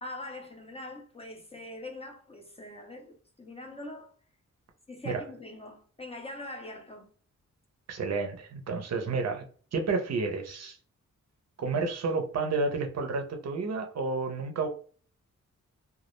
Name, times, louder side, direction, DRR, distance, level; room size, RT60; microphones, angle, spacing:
voice 1, 0.0-4.1 4.9-7.1, left 1 dB, 20° left, 0.4 m, -43 dB
voice 2, 7.9-9.4 9.7-10.8 11.6-14.7, right 4 dB, 60° right, 0.5 m, -30 dB
2.2 x 2.0 x 2.9 m
wide cardioid pair, 160°, 30 cm